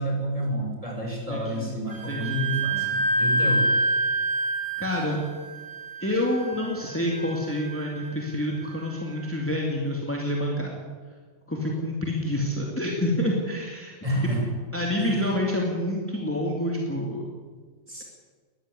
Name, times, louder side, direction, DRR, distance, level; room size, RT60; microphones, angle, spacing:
voice 1, 0.0-3.7 14.0-14.4 15.0-15.3 17.9-18.0, right 1 dB, 25° right, 0 dB, 6.3 m, -29 dB
voice 2, 1.3-1.8 2.1-2.5 4.8-5.2 6.0-10.8 11.5-14.0 14.2-14.3 14.7-17.3, left 1 dB, 10° left, -1 dB, 2.6 m, -28 dB
Wind instrument woodwind instrument, 1.9-9.3, right 1 dB, 45° right, 3.8 m, -28 dB
20.5 x 14.5 x 9.8 m, 1.5 s
omnidirectional pair, 1.4 m